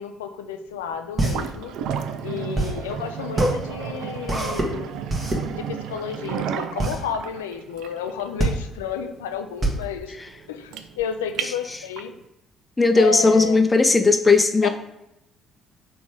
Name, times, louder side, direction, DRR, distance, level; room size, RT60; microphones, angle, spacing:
voice 1, 0.0-1.7 2.2-5.0 5.5-10.2 10.5-12.1 13.0-13.6 14.6-14.7, left 8 dB, 80° left, 7 dB, 0.3 m, -32 dB
sound 1, 0.7-11.0, right 2 dB, 35° right, 1.3 m, -26 dB
sound 2, 1.2-12.2, right 8 dB, 65° right, 0.3 m, -33 dB
voice 2, 12.8-14.7, left 3 dB, 20° left, 7 dB, 0.6 m, -17 dB
4.1 x 3.3 x 3.6 m, 0.88 s
figure-of-eight pair, 45°, 0 cm